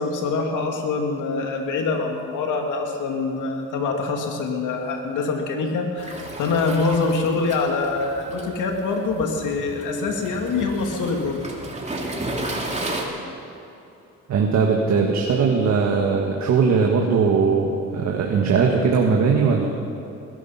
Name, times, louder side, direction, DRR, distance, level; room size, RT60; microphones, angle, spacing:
voice 1, 0.0-11.4, left 4 dB, 80° left, 2 dB, 2.4 m, -25 dB
Waves surf, 6.0-13.0, right 1 dB, 20° right, 2.8 m, -33 dB
voice 2, 14.3-19.7, right 5 dB, 65° right, 0 dB, 1.7 m, -19 dB
20.5 x 12.0 x 5.8 m, 2.8 s
cardioid pair, 90°, 30 cm